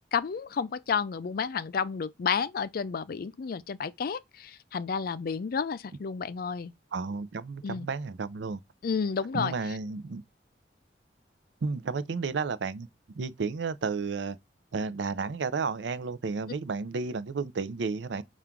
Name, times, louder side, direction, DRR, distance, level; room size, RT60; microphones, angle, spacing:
voice 1, 0.1-6.7 7.6-7.9 8.8-9.5, left 6 dB, 55° left, 0.4 m, -31 dB
voice 2, 6.9-8.6 9.3-10.2 11.6-12.9 13.2-14.4 14.7-18.2, right 4 dB, 80° right, 0.5 m, -32 dB
5.7 x 2.4 x 3.6 m
head